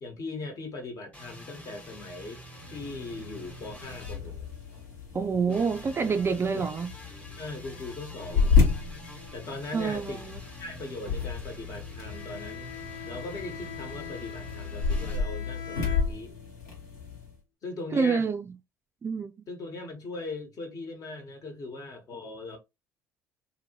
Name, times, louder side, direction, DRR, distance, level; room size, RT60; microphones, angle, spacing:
voice 1, 0.0-2.4 2.7-4.5 5.5-5.6 6.5-6.6 7.4-8.7 9.3-10.3 10.6-12.7 13.1-16.3 17.6-18.2 19.5-22.6, left 2 dB, 40° left, 1.1 m, -39 dB
sound 1, 1.1-4.9 5.5-15.2, right 1 dB, 15° left, 1.1 m, -47 dB
sound 2, 2.5-17.3, left 5 dB, 80° left, 1.2 m, -31 dB
voice 2, 5.1-6.9 9.7-10.4 17.9-18.4 19.0-19.3, right 5 dB, 30° right, 0.4 m, -27 dB
Bowed string instrument, 12.0-16.6, left 10 dB, 65° left, 0.6 m, -43 dB
2.7 x 2.6 x 2.9 m
figure-of-eight pair, 55°, 9 cm